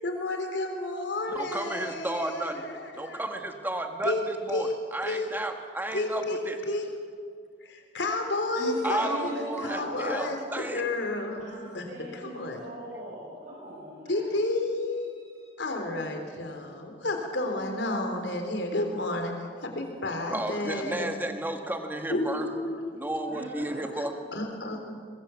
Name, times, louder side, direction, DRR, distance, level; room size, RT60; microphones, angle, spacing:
voice 1, 0.0-3.2 4.0-4.2 4.5-4.7 5.0-5.3 5.9-6.4 6.7-6.9 7.6-9.3 9.6-11.9 12.1-12.6 14.1-15.1 15.6-19.3 19.6-21.1 22.1-22.9 24.0-24.1 24.3-24.9, left 2 dB, 75° left, 4 dB, 3.7 m, -31 dB
voice 2, 1.3-2.6 3.0-6.6 8.8-10.9 20.3-22.5 22.9-24.1, right 1 dB, 10° right, 5 dB, 1.7 m, -33 dB
voice 3, 8.5-10.3 11.4-14.2 15.0-15.5 23.3-23.9, right 1 dB, 45° right, -5 dB, 6.2 m, -39 dB
22.5 x 22.0 x 7.2 m, 2.1 s
head